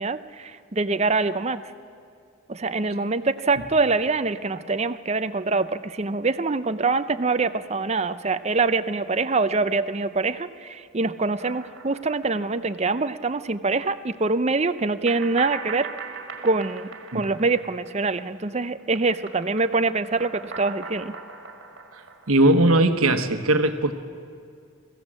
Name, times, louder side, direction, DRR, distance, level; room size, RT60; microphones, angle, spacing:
voice 1, 0.0-1.6 2.5-15.9 16.4-16.9 17.1-21.1, right 3 dB, 30° right, 11 dB, 0.5 m, -24 dB
sound 1, 11.4-13.0 13.3-13.4 15.1-18.5 18.8-23.0, right 5 dB, 55° right, 2.0 m, -40 dB
voice 2, 22.3-23.9, right 1 dB, 85° right, 8 dB, 1.2 m, -19 dB
22.5 x 15.0 x 7.5 m, 2.3 s
head